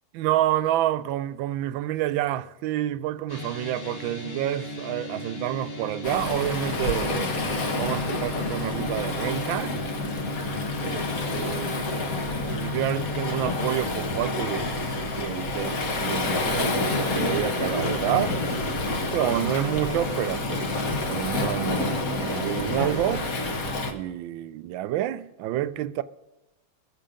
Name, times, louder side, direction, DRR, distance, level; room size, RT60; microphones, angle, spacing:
voice 1, 0.1-7.4 7.7-9.8 10.8-12.0 12.5-14.8 15.2-18.3 19.1-20.6 21.1-23.3 23.9-26.0, right 13 dB, 80° right, 1.4 m, -29 dB
sound 1, 3.3-13.7, left 3 dB, 35° left, 1.4 m, -36 dB
Waves surf, 6.0-23.9, left 2 dB, 50° left, 1.6 m, -28 dB
21.5 x 7.5 x 5.0 m
omnidirectional pair, 2.1 m